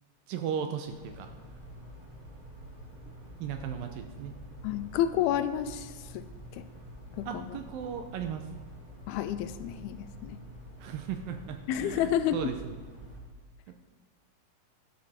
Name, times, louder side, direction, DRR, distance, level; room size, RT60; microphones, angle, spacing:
voice 1, 0.3-1.3 3.4-4.4 7.3-8.5 10.8-12.8, right 8 dB, 75° right, 6 dB, 2.2 m, -36 dB
sound 1, 0.8-13.2, equal, 15° right, 1.9 m, -47 dB
voice 2, 4.6-6.3 6.5-6.6 7.2-7.6 9.1-10.4 11.7-12.4, left 11 dB, 80° left, 12 dB, 2.4 m, -30 dB
13.0 x 12.0 x 4.3 m, 1.4 s
omnidirectional pair, 4.6 m